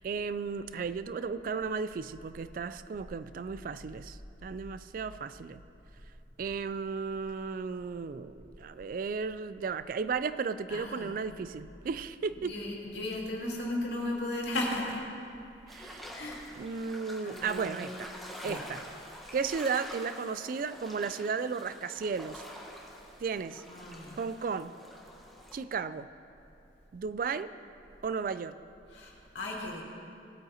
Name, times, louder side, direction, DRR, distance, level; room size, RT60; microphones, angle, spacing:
voice 1, 0.0-5.6 6.4-12.6 15.7-16.1 16.6-18.1 18.4-18.8 19.3-22.4 23.2-23.6 24.2-24.7 25.5-26.1 26.9-27.5 28.0-28.6, right 5 dB, 50° right, 13 dB, 0.3 m, -34 dB
voice 2, 10.7-11.1 12.4-15.0 16.1-16.4 17.2-17.7 18.4-18.7 23.7-24.2 28.9-29.8, left 1 dB, 80° left, -3 dB, 2.2 m, -35 dB
sound 1, 15.7-25.5, equal, ahead, 1.2 m, -47 dB
18.0 x 8.8 x 2.8 m, 2.6 s
head